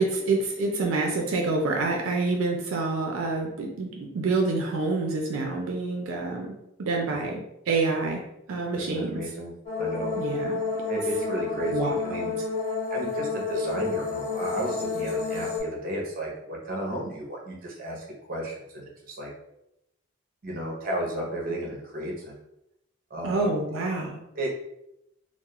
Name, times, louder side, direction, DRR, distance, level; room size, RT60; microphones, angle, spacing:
voice 1, 0.0-7.4 7.7-8.2 8.5-9.2 10.2-10.6 11.7-12.3 23.2-24.2, right 3 dB, 90° right, 1 dB, 0.4 m, -27 dB
voice 2, 8.8-10.2 10.9-12.3 12.9-19.3 20.4-22.3 23.1-23.5 24.3-24.5, right 1 dB, 45° right, -2 dB, 0.7 m, -33 dB
sound 1, 9.7-15.6, left 4 dB, 35° left, 1.2 m, -30 dB
2.3 x 2.0 x 2.9 m, 0.83 s
head